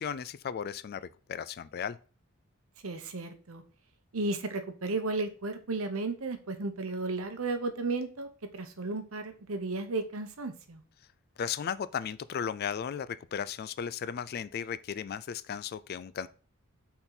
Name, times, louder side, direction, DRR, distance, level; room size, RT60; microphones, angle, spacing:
voice 1, 0.0-2.0 11.4-16.3, left 7 dB, 45° left, 0.3 m, -35 dB
voice 2, 2.8-3.6 4.1-8.3 8.5-10.8, right 3 dB, 70° right, 0.9 m, -34 dB
5.6 x 4.4 x 4.0 m
head